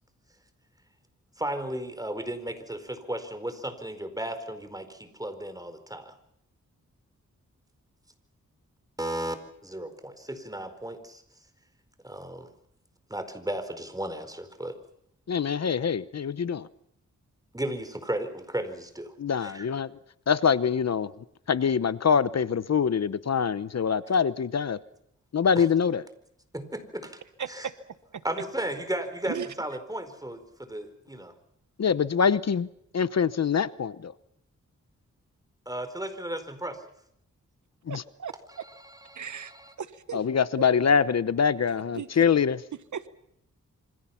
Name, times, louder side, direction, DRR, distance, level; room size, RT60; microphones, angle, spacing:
voice 1, 1.4-6.1 9.0-9.4 9.6-11.2 12.0-12.5 13.1-14.8 17.5-19.7 25.5-25.7 26.5-27.2 27.5-27.7 28.2-31.3 35.7-36.8 38.6-38.7 39.1-39.7, right 1 dB, 10° right, 4.5 m, -35 dB
voice 2, 15.3-16.7 19.2-19.9 20.3-21.1 21.5-24.8 25.3-26.0 31.8-32.7 32.9-34.1 37.9-38.0 40.1-42.6, left 6 dB, 60° left, 0.9 m, -24 dB
voice 3, 27.4-27.8 28.1-28.2 29.2-29.5 37.9-38.6 39.1-39.5 39.8-40.2 40.6-40.9 41.9-42.3 42.9-43.1, right 7 dB, 75° right, 1.2 m, -37 dB
27.5 x 25.5 x 5.9 m
cardioid pair, 70°, 30 cm